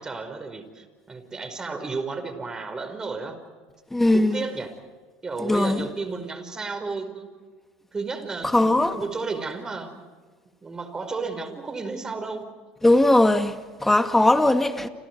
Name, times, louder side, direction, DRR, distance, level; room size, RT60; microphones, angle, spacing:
voice 1, 0.0-3.4 4.1-4.7 5.2-7.3 7.9-9.9 10.6-12.5, right 4 dB, 20° right, 5.3 m, -33 dB
voice 2, 3.9-4.4 5.4-5.9 8.4-9.0 12.8-14.9, left 1 dB, 10° left, 2.2 m, -19 dB
30.0 x 28.0 x 4.8 m
supercardioid pair, 95°, 3 cm